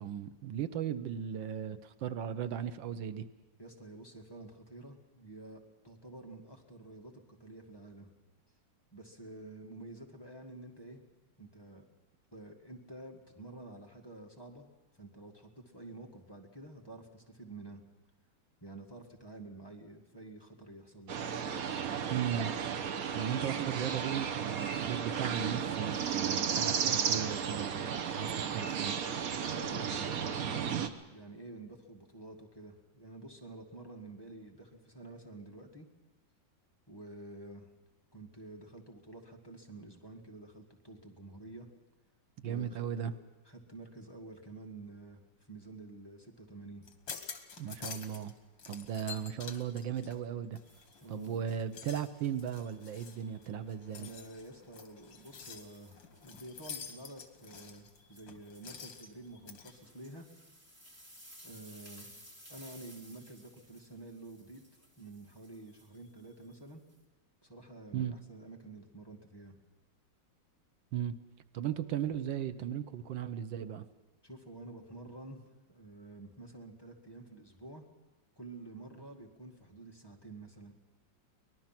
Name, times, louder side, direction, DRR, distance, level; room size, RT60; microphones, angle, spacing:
voice 1, 0.0-3.3 22.1-22.6 23.1-29.0 42.4-43.1 47.6-48.3 48.7-50.6 51.1-54.1 67.9-68.1 70.9-71.1 71.5-73.9, right 9 dB, 85° right, 11 dB, 1.6 m, -36 dB
voice 2, 3.6-8.1 8.9-11.0 11.4-11.9 12.3-14.7 14.9-17.8 18.6-21.2 29.4-35.9 36.9-37.7 38.1-41.7 42.4-43.1 43.5-46.9 51.0-51.5 54.0-60.3 61.4-62.1 62.5-64.6 65.0-66.8 67.4-69.6 74.2-75.4 75.7-77.8 78.4-80.7, right 2 dB, 15° left, 0 dB, 1.8 m, -49 dB
sound 1, 21.1-30.9, right 7 dB, 55° right, 1.3 m, -34 dB
sound 2, 46.8-48.3 48.6-51.0 51.5-59.7, left 6 dB, 80° left, 2.2 m, -48 dB
sound 3, 50.6-51.9 52.6-53.6 54.0-54.3 54.8-67.0, equal, 10° right, 2.7 m, -58 dB
24.0 x 19.5 x 5.9 m, 1.2 s
omnidirectional pair, 2.0 m